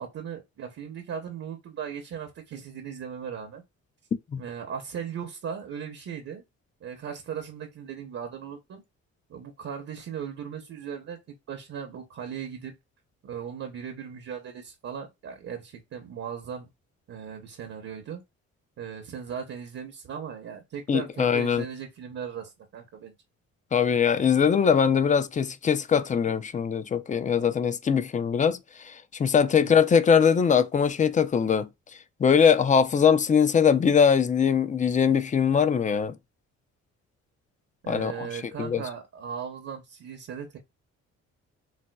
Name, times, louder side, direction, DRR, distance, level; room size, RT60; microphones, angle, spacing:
voice 1, 0.0-3.6 4.4-6.4 6.8-8.8 9.3-12.8 13.2-16.7 17.1-18.2 18.8-23.1 29.5-29.8 37.8-40.6, right 7 dB, 55° right, 0.8 m, -38 dB
voice 2, 20.9-21.6 23.7-31.7 32.2-36.2 37.9-38.3 38.6-38.8, left 7 dB, 25° left, 0.4 m, -22 dB
4.1 x 2.1 x 2.2 m
cardioid pair, 90°, 30 cm